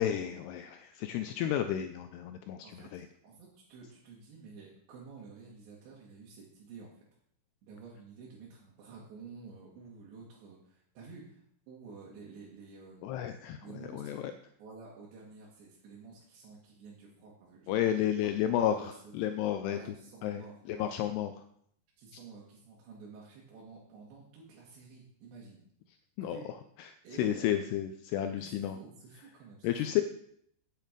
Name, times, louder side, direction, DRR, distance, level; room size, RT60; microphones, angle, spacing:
voice 1, 0.0-3.1 13.0-14.3 17.7-19.8 20.2-20.4 20.7-21.3 26.2-26.4 26.8-28.8 29.6-30.0, left 11 dB, 85° left, 8 dB, 2.3 m, -32 dB
voice 2, 3.2-6.9 7.6-13.2 13.6-14.2 14.6-18.1 18.4-19.3 19.6-21.0 22.0-25.6 26.2-26.4 27.0-27.6 28.3-29.9, right 4 dB, 70° right, -5 dB, 3.9 m, -51 dB
9.2 x 8.9 x 5.1 m, 0.68 s
omnidirectional pair, 5.4 m